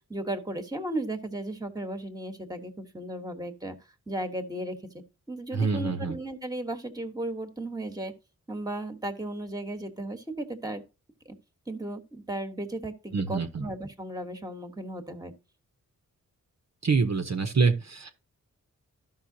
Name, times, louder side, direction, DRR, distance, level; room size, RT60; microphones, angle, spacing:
voice 1, 0.1-3.8 4.1-4.8 5.3-8.1 8.5-10.8 11.2-11.3 11.7-15.3, right 1 dB, 10° right, 1.3 m, -35 dB
voice 2, 5.5-6.2 13.1-13.7 16.8-18.1, right 4 dB, 55° right, 0.9 m, -26 dB
13.0 x 5.6 x 2.7 m
wide cardioid pair, 100°, 32 cm